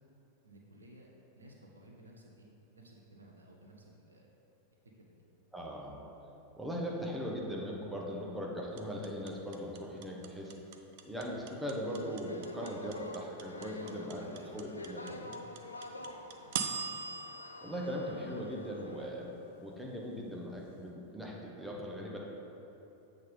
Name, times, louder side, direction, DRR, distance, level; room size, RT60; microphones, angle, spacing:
voice 1, 0.4-1.1 1.3-2.5 2.7-4.3 5.0-5.1 13.8-15.8, right 1 dB, 75° right, -1 dB, 0.9 m, -55 dB
voice 2, 5.5-6.0 6.6-10.5 11.1-14.2 14.5-15.2 16.0-16.1 17.6-22.2, equal, 5° right, -3 dB, 1.0 m, -39 dB
sound 1, 8.8-18.9, right 6 dB, 50° right, 0.5 m, -41 dB
sound 2, 11.8-19.1, left 2 dB, 80° left, 0.4 m, -47 dB
7.9 x 3.7 x 5.3 m, 3.0 s
figure-of-eight pair, 90°, 0 cm